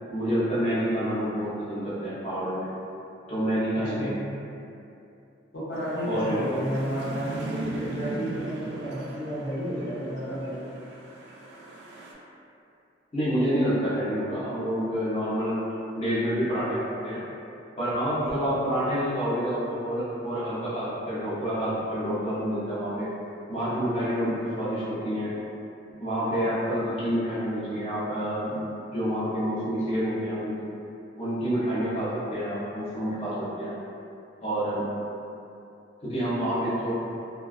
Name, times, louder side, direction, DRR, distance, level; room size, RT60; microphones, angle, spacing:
voice 1, 0.1-2.7 3.3-4.1 6.0-6.6 13.1-15.6 15.9-17.2 17.8-23.1 23.5-25.3 26.0-30.5 31.2-33.8 34.4-34.8 36.0-36.9, equal, 35° left, -12 dB, 0.6 m, -28 dB
voice 2, 3.7-4.2 5.5-10.6, equal, 80° left, -10 dB, 0.8 m, -32 dB
sound 1, 5.7-12.1, right 2 dB, 60° right, 0.3 m, -38 dB
2.4 x 2.2 x 2.3 m, 2.7 s
head